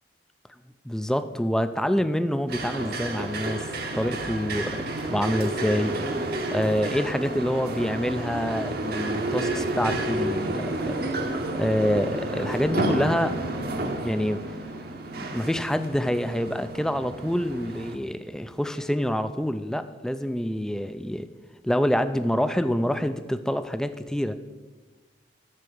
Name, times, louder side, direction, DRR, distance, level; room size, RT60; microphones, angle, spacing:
voice 1, 0.9-3.7 3.9-6.1 6.5-13.4 13.8-14.6 15.3-21.3 21.6-24.3, equal, 5° left, 11 dB, 0.3 m, -27 dB
sound 1, 2.5-17.9, right 2 dB, 50° right, 0.8 m, -30 dB
9.9 x 4.7 x 6.9 m, 1.3 s
head